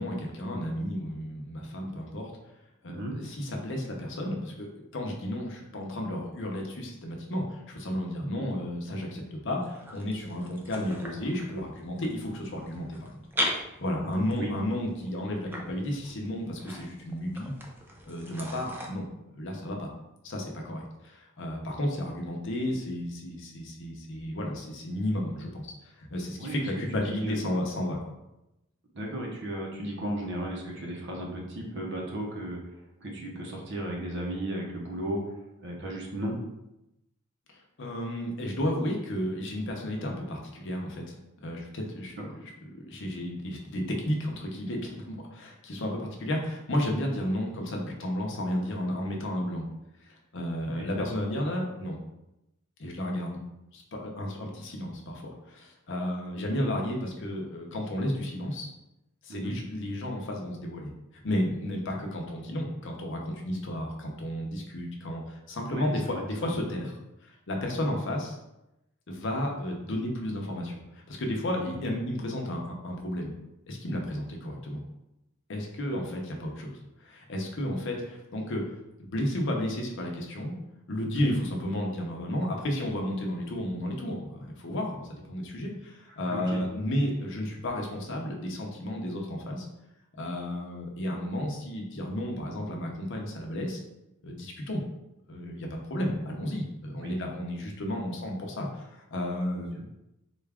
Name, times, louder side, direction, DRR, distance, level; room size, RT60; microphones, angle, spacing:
voice 1, 0.0-2.3 2.8-4.7 4.9-13.2 13.5-17.5 18.0-19.1 19.3-19.9 20.2-28.1 37.5-41.2 41.4-42.1 42.7-49.7 50.0-52.0 52.8-53.4 53.7-58.7 59.2-60.9 61.2-66.9 67.2-68.4 69.1-73.3 73.7-74.8 75.5-78.7 79.0-80.5 80.9-89.7 90.2-93.8 94.2-94.8 95.3-99.9, left 1 dB, 60° left, 0 dB, 0.7 m, -32 dB
sound 1, 9.6-18.9, equal, 10° right, 0.4 m, -39 dB
voice 2, 14.0-14.5 26.4-26.5 27.0-27.7 28.9-32.6 33.0-35.2 35.6-36.4 42.2-42.3 50.7-50.9 59.3-59.5 65.7-66.5 71.6-71.8 81.1-81.4 86.3-86.6 97.0-97.2, right 1 dB, 55° right, -1 dB, 0.8 m, -35 dB
3.9 x 2.4 x 3.4 m, 0.90 s
head